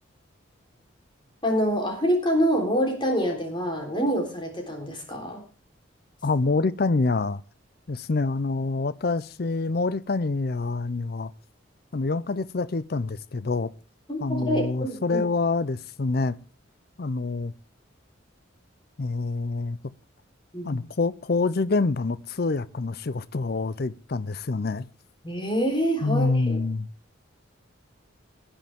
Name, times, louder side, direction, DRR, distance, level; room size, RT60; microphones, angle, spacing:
voice 1, 1.4-5.4 14.1-15.2 20.5-20.8 25.2-26.6, equal, 25° left, 3.7 m, -26 dB
voice 2, 6.2-7.4 7.9-11.3 11.9-13.7 14.2-16.4 17.0-17.5 19.0-19.8 20.6-24.9 26.0-26.9, left 3 dB, 50° left, 0.5 m, -26 dB
19.0 x 10.0 x 3.5 m
head